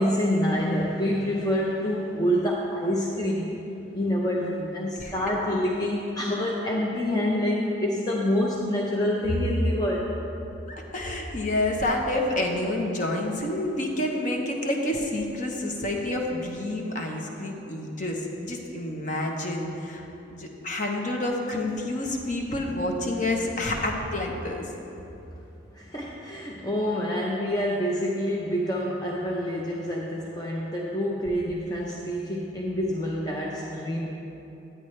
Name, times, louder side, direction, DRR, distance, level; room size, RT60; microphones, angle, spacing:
voice 1, 0.0-3.6 3.9-10.0 25.7-34.1, equal, 20° left, -4 dB, 0.6 m, -27 dB
voice 2, 10.7-20.1 20.3-24.7, left 1 dB, 40° left, 1 dB, 0.9 m, -28 dB
10.0 x 9.0 x 3.2 m, 2.9 s
head